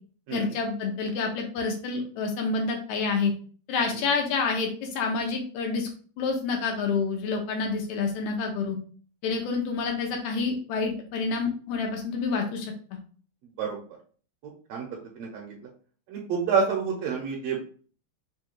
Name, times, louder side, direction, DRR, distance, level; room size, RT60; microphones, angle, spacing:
voice 1, 0.3-3.3 3.7-5.9 6.2-8.8 9.2-12.7, left 4 dB, 85° left, 2 dB, 2.0 m, -28 dB
voice 2, 15.2-15.5 16.1-17.6, right 5 dB, 75° right, -2 dB, 1.8 m, -28 dB
4.9 x 2.3 x 3.0 m, 0.42 s
omnidirectional pair, 3.3 m